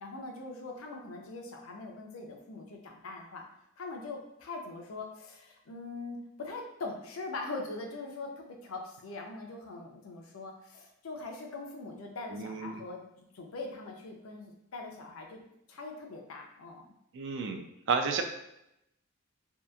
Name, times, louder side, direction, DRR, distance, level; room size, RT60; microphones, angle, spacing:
voice 1, 0.0-3.4 3.8-13.0 13.3-15.4 15.7-16.9, left 3 dB, 85° left, 2 dB, 0.5 m, -42 dB
voice 2, 12.3-12.8 17.1-17.6 17.9-18.2, right 5 dB, 60° right, 5 dB, 0.3 m, -31 dB
2.8 x 2.4 x 2.3 m, 0.83 s
head